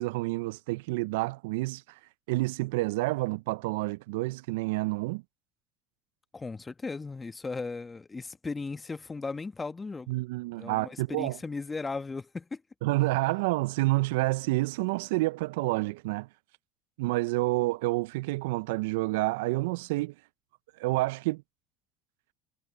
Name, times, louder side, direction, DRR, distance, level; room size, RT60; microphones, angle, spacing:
voice 1, 0.0-1.8 2.3-5.2 10.1-11.4 12.8-16.3 17.0-20.1 20.8-21.4, right 21 dB, 75° right, 0.5 m, -29 dB
voice 2, 6.3-10.1 10.6-12.6, left 4 dB, 20° left, 1.6 m, -36 dB
hypercardioid pair, 70°, 0 cm